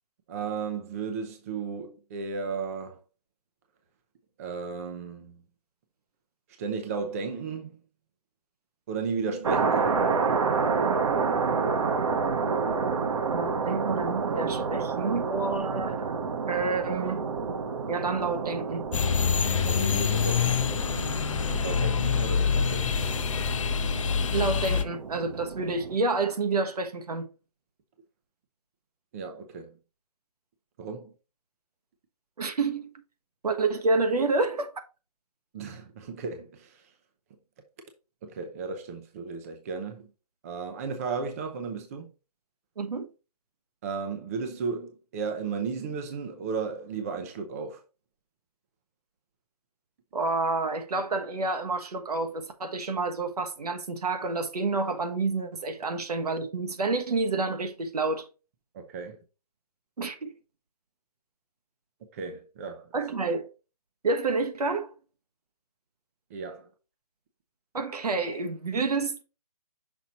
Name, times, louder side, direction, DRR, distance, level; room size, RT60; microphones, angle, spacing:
voice 1, 0.3-3.0 4.4-5.4 6.6-7.8 8.9-10.0 19.6-20.7 21.6-23.0 29.1-29.7 30.8-31.1 35.5-36.9 38.2-40.1 40.4-42.1 43.8-47.8 58.7-59.2 62.1-62.9 66.3-66.7, right 5 dB, 25° right, 0.6 m, -34 dB
sound 1, 9.4-26.0, right 5 dB, 55° right, 1.1 m, -29 dB
voice 2, 13.3-16.2 16.5-17.2 17.9-18.8 24.3-27.3 32.4-32.9 33.4-34.7 42.8-43.1 50.1-58.3 60.0-60.3 62.9-63.5 64.0-64.9 67.7-69.2, right 3 dB, 75° right, 1.3 m, -29 dB
sound 2, 18.9-24.8, left 7 dB, 55° left, 0.7 m, -26 dB
6.0 x 4.0 x 4.1 m
hypercardioid pair, 160°, 20 cm